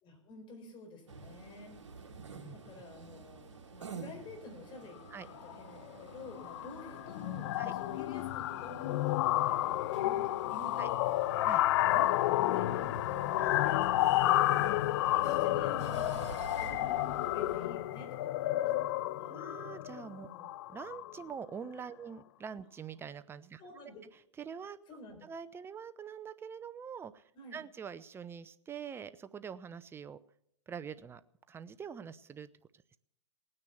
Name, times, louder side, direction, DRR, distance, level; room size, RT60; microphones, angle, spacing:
voice 1, 0.0-1.8 2.5-5.0 5.3-11.5 11.8-13.9 15.0-19.4 20.2-20.5 23.6-24.0 24.9-25.3 27.3-27.6, left 2 dB, 30° left, 5 dB, 4.8 m, -50 dB
sound 1, 1.1-17.7, right 5 dB, 80° right, 1.9 m, -49 dB
voice 2, 2.2-2.6 5.1-5.3 7.6-7.7 10.8-10.9 11.4-11.6 13.4-14.4 19.3-20.3 20.7-23.6 24.4-24.8 25.2-27.2 27.5-30.2 30.7-31.2 31.5-32.5, right 7 dB, 15° right, 14 dB, 0.6 m, -45 dB
sound 2, 5.2-5.5 5.8-6.1 6.4-21.2, left 15 dB, 55° left, 0.5 m, -31 dB
18.0 x 9.7 x 7.0 m, 0.73 s
hypercardioid pair, 115°, 15 cm